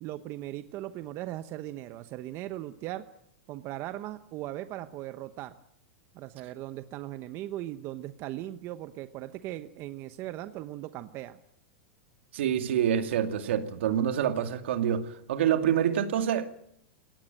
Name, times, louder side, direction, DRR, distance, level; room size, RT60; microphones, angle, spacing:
voice 1, 0.0-3.0 3.5-5.5 6.1-11.4, right 14 dB, 45° right, 10 dB, 1.0 m, -38 dB
voice 2, 12.3-16.5, right 9 dB, 75° right, 7 dB, 2.3 m, -27 dB
22.5 x 18.0 x 9.1 m, 0.75 s
hypercardioid pair, 125°, 6 cm